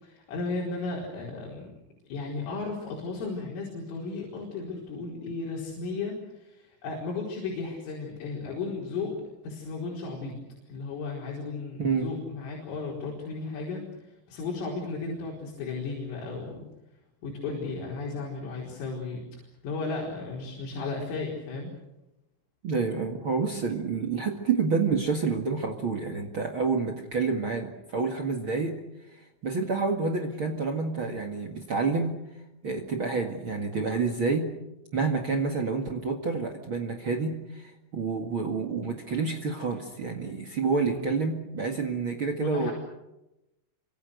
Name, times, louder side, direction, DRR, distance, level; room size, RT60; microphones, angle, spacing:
voice 1, 0.0-1.7 2.1-9.2 9.4-10.3 10.7-13.9 14.3-16.6 17.2-19.2 19.6-21.7 40.8-41.1 42.4-42.7, left 3 dB, 85° left, -2 dB, 7.2 m, -34 dB
voice 2, 11.8-12.1 22.6-28.7 29.1-32.1 32.6-34.5 34.9-42.7, right 4 dB, 65° right, 6 dB, 1.2 m, -28 dB
29.0 x 25.5 x 6.6 m, 0.95 s
omnidirectional pair, 5.7 m